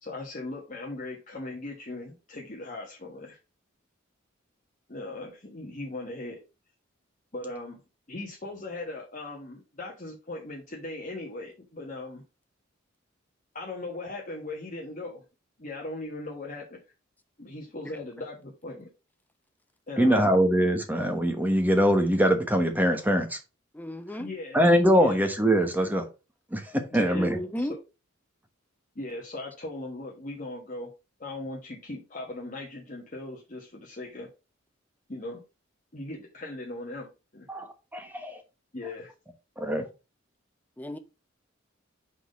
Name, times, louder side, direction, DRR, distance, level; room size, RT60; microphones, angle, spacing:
voice 1, 0.0-3.4 4.9-6.4 7.3-7.8 8.1-12.2 13.5-15.2 15.6-16.8 17.4-18.9 19.9-20.4 24.2-24.6 25.0-25.2 26.9-27.7 28.9-30.9 31.2-34.3 35.1-35.4 35.9-37.5 38.7-39.1, left 2 dB, 40° left, 1.4 m, -39 dB
voice 2, 20.0-23.4 24.5-26.0 26.5-26.6 26.9-27.4 37.5-37.7 37.9-38.4 39.6-39.9, equal, 10° right, 1.1 m, -23 dB
voice 3, 23.7-24.3 27.1-27.7 40.8-41.0, left 1 dB, 10° left, 0.6 m, -33 dB
6.0 x 4.1 x 5.0 m
head